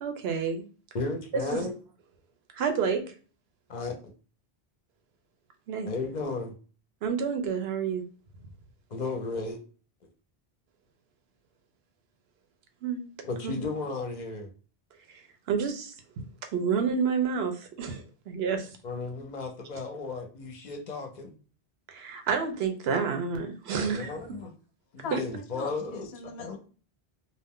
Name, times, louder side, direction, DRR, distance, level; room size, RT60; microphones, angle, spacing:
voice 1, 0.0-0.6 1.3-1.7 2.5-3.0 5.7-5.9 7.0-8.0 12.8-13.0 13.4-13.5 15.1-16.3 16.5-18.8 21.9-24.1 25.1-25.2, right 6 dB, 80° right, 6 dB, 0.8 m, -29 dB
voice 2, 0.9-1.7 3.7-3.9 5.9-6.5 8.9-9.6 13.2-14.5 18.8-21.3 23.8-24.5 24.9-26.1 26.4-26.6, left 3 dB, 50° left, 4 dB, 0.6 m, -34 dB
voice 3, 25.0-26.6, left 3 dB, 85° left, 7 dB, 0.8 m, -40 dB
2.5 x 2.1 x 3.5 m, 0.37 s
omnidirectional pair, 1.0 m